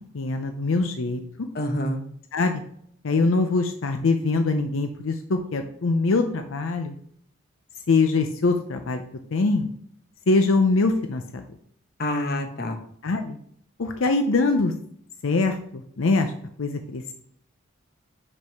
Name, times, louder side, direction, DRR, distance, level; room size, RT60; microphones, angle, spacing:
voice 1, 0.1-1.2 2.3-2.6 3.0-6.9 7.9-9.0 9.3-9.7 10.3-11.4 13.0-13.4 13.8-14.7 15.2-16.3 16.6-17.1, left 3 dB, 75° left, 6 dB, 0.6 m, -23 dB
voice 2, 1.5-2.0 12.0-12.8, left 1 dB, 50° left, 6 dB, 0.9 m, -27 dB
5.4 x 5.3 x 4.6 m, 0.65 s
head